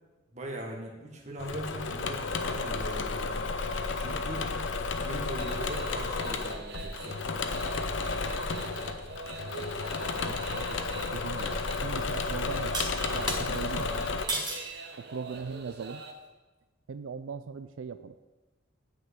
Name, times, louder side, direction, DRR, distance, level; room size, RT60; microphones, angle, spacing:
voice 1, 0.3-3.4 3.9-4.5 4.9-7.1 13.7-14.1, right 1 dB, 35° right, 0 dB, 1.6 m, -40 dB
Engine / Mechanisms, 1.4-14.3, left 4 dB, 65° left, 0.7 m, -32 dB
sound 1, 5.4-16.1, right 3 dB, 55° right, 1.0 m, -44 dB
voice 2, 10.3-13.9 15.1-16.0 16.9-18.2, right 5 dB, 75° right, 11 dB, 0.4 m, -40 dB
sound 2, 12.7-13.4 14.3-14.7 15.3-15.7, right 2 dB, 20° right, 1.6 m, -33 dB
9.4 x 5.1 x 8.0 m, 1.2 s
head